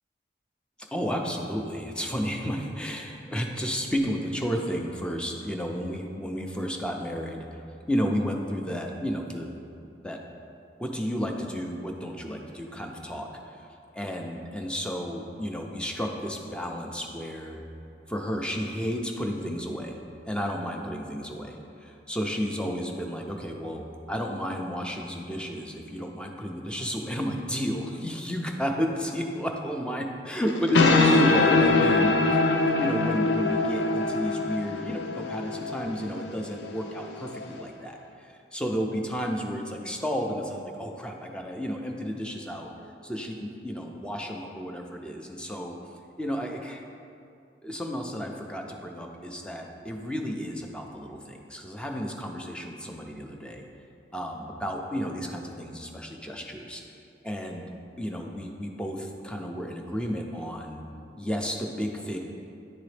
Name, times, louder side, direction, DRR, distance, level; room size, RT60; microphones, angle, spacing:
voice 1, 0.9-7.6 7.9-9.5 10.0-10.2 10.8-13.7 14.0-17.6 18.1-20.0 20.3-32.4 32.8-42.7 43.0-45.7 46.2-46.8 47.6-53.6 54.1-56.8 57.2-57.7 58.0-60.8 61.2-62.2, equal, 5° left, 2 dB, 0.4 m, -32 dB
sound 1, 30.5-37.6, left 3 dB, 70° left, 0.5 m, -24 dB
9.5 x 3.9 x 3.3 m, 2.6 s
head